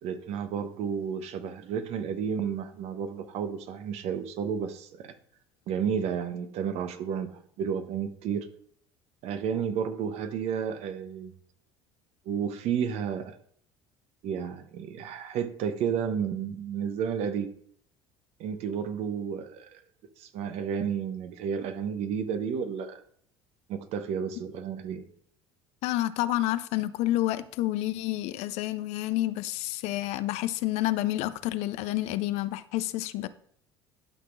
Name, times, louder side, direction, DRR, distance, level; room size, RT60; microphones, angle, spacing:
voice 1, 0.0-5.1 5.7-8.5 9.2-11.3 12.3-13.4 14.2-17.5 18.4-19.8 20.2-23.0 23.7-25.0, right 7 dB, 60° right, 0.9 m, -32 dB
voice 2, 25.8-33.3, left 15 dB, 60° left, 0.5 m, -29 dB
11.5 x 6.0 x 2.5 m
hypercardioid pair, 65°, 12 cm